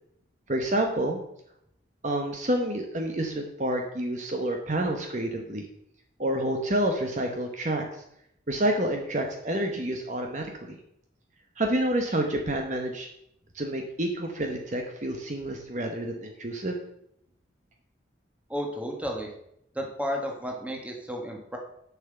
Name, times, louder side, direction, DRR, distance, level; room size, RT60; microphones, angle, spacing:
voice 1, 0.5-1.2 2.0-5.6 6.2-7.8 8.5-10.8 11.6-13.1 13.5-16.8, right 1 dB, 40° right, 3 dB, 1.0 m, -28 dB
voice 2, 18.5-19.3 19.7-21.6, equal, 10° right, 1 dB, 1.6 m, -32 dB
7.2 x 5.9 x 7.7 m, 0.75 s
head